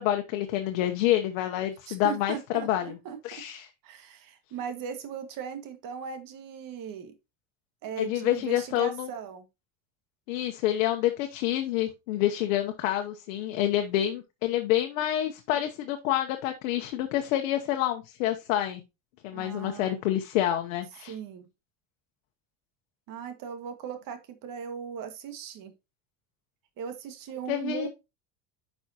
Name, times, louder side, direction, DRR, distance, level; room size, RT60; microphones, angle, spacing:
voice 1, 0.0-3.0 3.2-3.7 8.0-9.1 10.3-18.8 19.2-21.1 27.5-27.9, left 12 dB, 85° left, 5 dB, 1.0 m, -28 dB
voice 2, 1.9-3.2 3.8-7.1 7.8-9.5 19.3-20.0 21.1-21.5 23.1-25.7 26.8-27.9, right 7 dB, 55° right, 8 dB, 1.9 m, -38 dB
9.8 x 5.4 x 2.9 m, 0.25 s
supercardioid pair, 110°, 39 cm